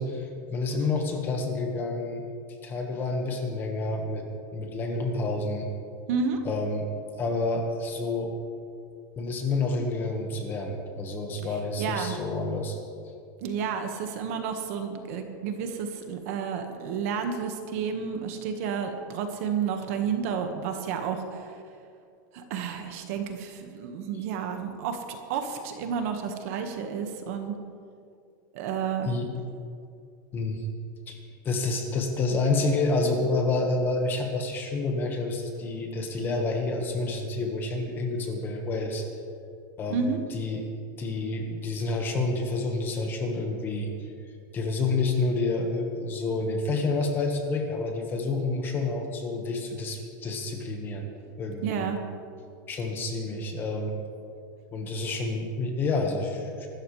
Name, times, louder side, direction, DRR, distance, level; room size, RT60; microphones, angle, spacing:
voice 1, 0.0-2.2 2.6-4.2 4.5-5.7 6.4-6.9 7.2-8.3 9.2-12.8 29.0-29.3 30.3-30.7 31.1-39.1 39.8-40.6 41.0-43.9 44.5-51.1 51.4-51.8 52.7-53.9 54.7-56.7, left 3 dB, 20° left, 3 dB, 1.5 m, -29 dB
voice 2, 6.1-6.4 11.8-12.2 13.4-21.6 22.3-27.5 28.5-29.1 39.9-40.2 51.6-52.0, right 6 dB, 45° right, 5 dB, 1.5 m, -31 dB
24.0 x 13.0 x 3.3 m, 2.4 s
supercardioid pair, 170°, 11 cm